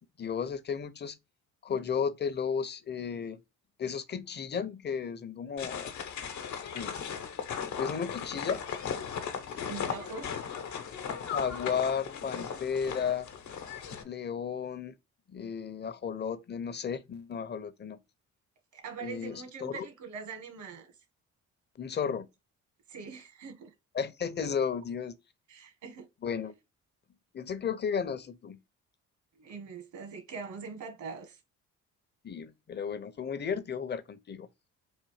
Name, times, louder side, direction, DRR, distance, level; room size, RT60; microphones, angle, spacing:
voice 1, 0.2-1.2 1.6-3.4 3.8-5.9 6.6-7.0 7.8-8.6 11.3-13.3 14.0-14.9 15.3-18.0 19.0-19.9 21.8-22.3 23.9-25.2 26.2-26.5 27.3-28.6 32.2-34.5, left 6 dB, 35° left, 0.7 m, -34 dB
sound 1, 5.6-14.0, left 7 dB, 70° left, 1.0 m, -37 dB
voice 2, 9.6-10.7 18.7-20.9 22.9-23.7 25.5-26.1 29.4-31.4, right 5 dB, 70° right, 1.7 m, -43 dB
4.1 x 2.5 x 4.8 m
cardioid pair, 90°, 30 cm